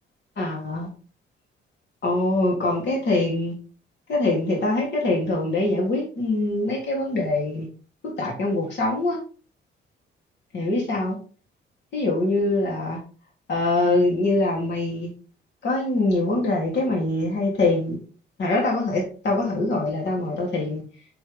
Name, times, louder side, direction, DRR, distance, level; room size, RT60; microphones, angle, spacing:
voice 1, 0.4-0.9 2.0-3.5 4.1-7.7 8.0-9.2 10.5-11.2 11.9-13.0 13.5-15.1 15.6-18.0 18.4-20.8, left 2 dB, 60° left, -2 dB, 3.6 m, -23 dB
7.0 x 6.5 x 3.8 m, 0.38 s
cardioid pair, 90°, 20 cm